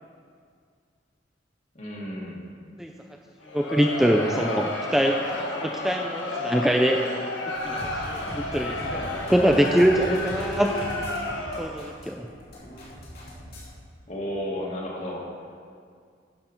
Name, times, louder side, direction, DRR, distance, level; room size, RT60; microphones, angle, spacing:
voice 1, 1.7-2.4 14.1-15.2, left 1 dB, 40° left, -3 dB, 2.0 m, -32 dB
Crowd, 3.4-11.9, left 2 dB, 85° left, 1.4 m, -31 dB
voice 2, 3.5-7.0 7.6-7.8 8.1-10.7 11.6-12.3, equal, ahead, 2 dB, 0.4 m, -23 dB
sound 1, 7.5-13.7, equal, 55° left, 2.7 m, -40 dB
11.0 x 7.0 x 5.2 m, 2.1 s
head